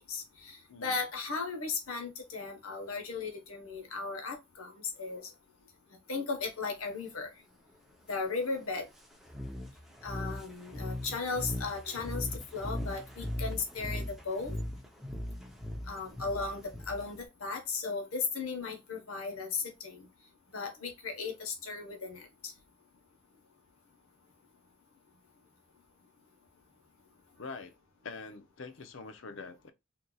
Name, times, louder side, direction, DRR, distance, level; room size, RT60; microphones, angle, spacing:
voice 1, 0.1-5.2 6.1-7.3 8.1-8.9 10.0-14.5 15.9-20.1 20.5-22.5, left 4 dB, 85° left, 1.1 m, -36 dB
voice 2, 0.7-1.0 27.4-27.8 28.0-29.7, left 4 dB, 60° left, 0.6 m, -44 dB
sound 1, 9.3-17.2, left 1 dB, ahead, 0.6 m, -39 dB
3.8 x 2.8 x 2.3 m
head